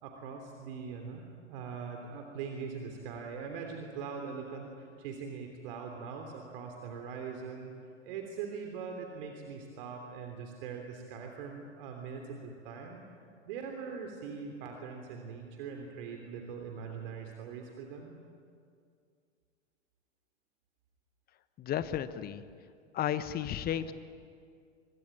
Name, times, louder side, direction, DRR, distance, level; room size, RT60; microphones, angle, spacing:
voice 1, 0.0-7.7 8.0-13.0 13.5-18.2, right 6 dB, 50° right, 3 dB, 3.3 m, -42 dB
voice 2, 21.6-22.4 22.9-23.9, left 10 dB, 25° left, 13 dB, 1.3 m, -33 dB
25.5 x 23.0 x 9.0 m, 2.3 s
figure-of-eight pair, 95°, 35 cm